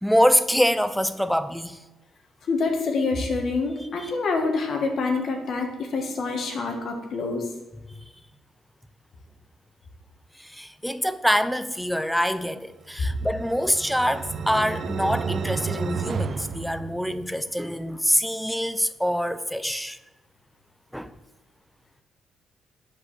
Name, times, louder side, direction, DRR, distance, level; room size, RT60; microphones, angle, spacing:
voice 1, 0.0-1.8 4.0-4.1 7.8-7.9 10.4-20.0 20.9-21.1, equal, ahead, 0.5 m, -25 dB
voice 2, 2.5-7.5, left 3 dB, 60° left, 1.8 m, -26 dB
sound 1, 12.9-17.5, right 5 dB, 55° right, 0.6 m, -32 dB
8.6 x 5.4 x 6.5 m
cardioid pair, 90°, 0 cm